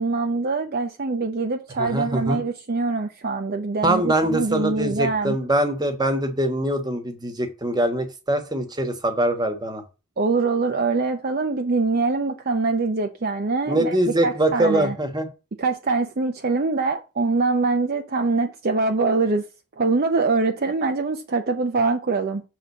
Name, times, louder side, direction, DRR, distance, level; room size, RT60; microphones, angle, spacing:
voice 1, 0.0-5.4 10.2-14.0 14.2-14.9 15.6-19.4 19.8-22.4, right 3 dB, 45° right, 0.6 m, -23 dB
voice 2, 1.8-2.4 3.8-9.8 13.7-15.3, right 1 dB, 20° right, 1.2 m, -23 dB
6.9 x 3.8 x 6.4 m
head